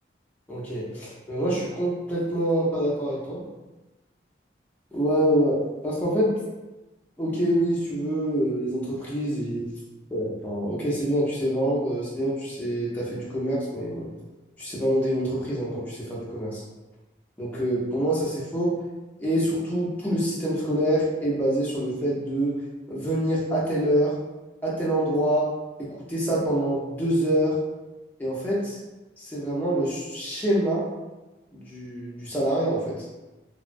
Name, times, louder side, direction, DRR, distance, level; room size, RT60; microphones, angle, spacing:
voice 1, 0.5-3.4 4.9-6.4 7.2-9.7 10.1-14.1 14.6-16.6 17.4-18.7 19.2-22.5 22.9-24.1 24.6-25.5 25.8-27.5 28.2-28.8 29.2-30.8 31.5-33.0, right 1 dB, 10° left, -7 dB, 0.6 m, -26 dB
2.9 x 2.2 x 2.5 m, 1.1 s
head